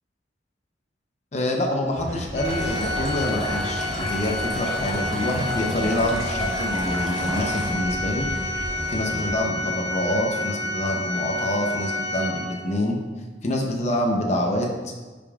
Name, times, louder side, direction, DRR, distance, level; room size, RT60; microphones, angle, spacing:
voice 1, 1.3-8.3 8.9-13.0 13.4-14.9, left 1 dB, 40° left, 1 dB, 0.7 m, -26 dB
sound 1, 2.0-9.3, equal, 45° right, 1.0 m, -34 dB
Organ, 2.3-12.9, left 2 dB, 90° left, 1.1 m, -30 dB
Stream, 2.4-7.7, right 1 dB, 5° left, 2.0 m, -34 dB
9.9 x 5.2 x 2.4 m, 1.3 s
head